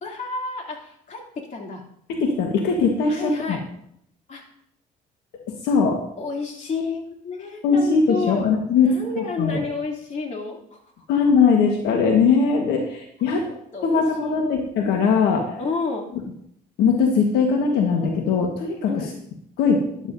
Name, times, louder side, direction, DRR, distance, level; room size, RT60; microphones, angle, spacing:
voice 1, 0.0-1.2 1.5-1.8 3.1-3.6 4.3-4.4 6.2-8.4 8.8-10.9 13.3-14.6 15.6-16.1 18.8-19.1, left 4 dB, 45° left, 0 dB, 2.9 m, -31 dB
voice 2, 2.1-3.6 5.5-6.0 7.6-8.9 9.4-9.6 11.1-13.4 13.8-15.5 16.8-18.9 19.6-19.8, left 5 dB, 80° left, 1 dB, 1.5 m, -20 dB
13.0 x 11.5 x 2.7 m, 0.72 s
cardioid pair, 110°, 17 cm